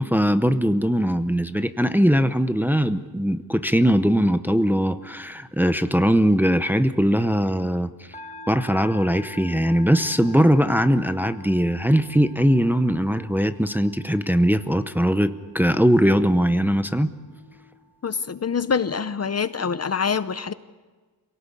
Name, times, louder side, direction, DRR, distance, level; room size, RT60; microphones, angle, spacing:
voice 1, 0.0-7.9 8.5-17.1, equal, 5° right, 10 dB, 0.7 m, -20 dB
sound 1, 8.1-19.6, left 2 dB, 15° left, 1.4 m, -46 dB
voice 2, 18.0-20.5, left 6 dB, 40° left, 13 dB, 0.7 m, -25 dB
27.0 x 18.0 x 8.4 m, 1.3 s
wide cardioid pair, 175°, 38 cm